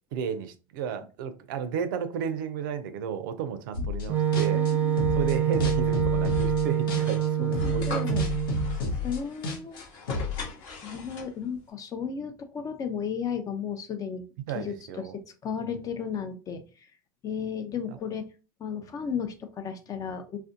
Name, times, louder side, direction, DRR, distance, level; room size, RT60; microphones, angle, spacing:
voice 1, 0.1-4.7 5.1-8.2 8.8-9.1 14.5-15.2, right 7 dB, 75° right, 0.4 m, -33 dB
sound 1, 3.7-4.1 4.3-7.3 7.5-10.4, left 4 dB, 80° left, 0.7 m, -31 dB
Wind instrument woodwind instrument, 4.1-8.8, right 10 dB, 15° right, 0.6 m, -26 dB
voice 2, 4.5-5.1 7.4-8.3 9.0-9.9 10.8-14.2 14.5-16.6 17.2-18.3 18.6-20.4, left 7 dB, 30° left, 0.5 m, -34 dB
sound 2, 6.2-11.6, left 4 dB, 60° left, 1.0 m, -41 dB
2.4 x 2.1 x 2.5 m
hypercardioid pair, 95°, 11 cm